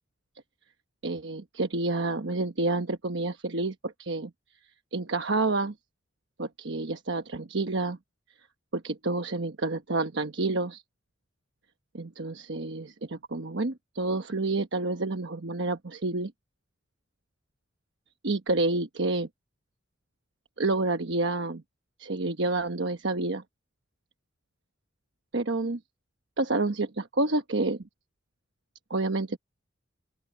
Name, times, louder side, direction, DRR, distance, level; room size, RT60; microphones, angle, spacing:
voice 1, 1.0-4.3 4.9-5.7 6.4-8.0 8.7-10.8 11.9-16.3 18.2-19.3 20.6-21.6 22.0-23.4 25.3-25.8 26.4-27.8 28.9-29.4, right 2 dB, 65° right, 1.1 m, -29 dB
open air
head